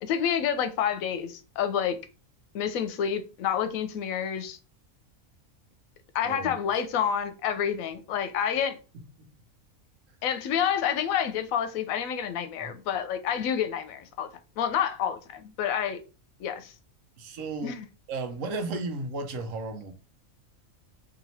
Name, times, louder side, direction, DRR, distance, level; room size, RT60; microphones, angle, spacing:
voice 1, 0.0-2.0 2.5-4.6 6.1-8.8 10.2-14.3 14.6-16.0 16.4-16.7 17.6-17.9, left 8 dB, 80° left, 1.0 m, -28 dB
voice 2, 6.2-6.5 9.2-9.3 12.6-12.7 17.2-17.8 18.1-19.9, right 3 dB, 70° right, 1.0 m, -34 dB
2.9 x 2.8 x 4.1 m
omnidirectional pair, 1.4 m